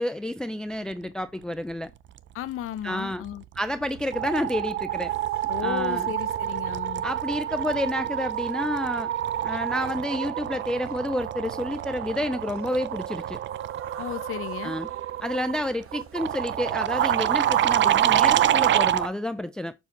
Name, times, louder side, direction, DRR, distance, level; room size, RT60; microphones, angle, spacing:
voice 1, 0.0-1.9 2.8-3.2 3.6-5.1 5.6-6.1 7.0-9.1 9.4-13.4 14.6-14.9 15.2-19.7, left 1 dB, 5° left, 0.3 m, -29 dB
voice 2, 2.3-3.4 5.5-7.0 14.0-14.8, left 13 dB, 90° left, 0.6 m, -34 dB
sound 1, 3.3-3.6 3.8-19.1, right 11 dB, 60° right, 0.4 m, -27 dB
sound 2, 4.9-18.3, right 8 dB, 90° right, 1.0 m, -51 dB
7.1 x 2.8 x 5.8 m
cardioid pair, 125°, 21 cm